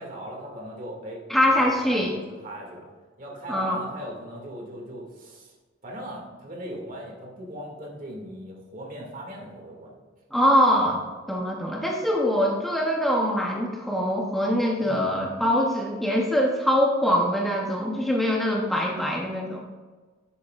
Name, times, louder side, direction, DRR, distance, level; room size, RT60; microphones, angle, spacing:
voice 1, 0.0-1.2 1.5-2.9 3.2-5.5 5.8-10.0 14.8-15.1, right 1 dB, 45° right, -1 dB, 2.1 m, -39 dB
voice 2, 1.3-2.1 3.5-3.8 10.3-11.0 11.3-19.6, equal, ahead, -2 dB, 0.8 m, -23 dB
11.5 x 8.3 x 2.4 m, 1.3 s
head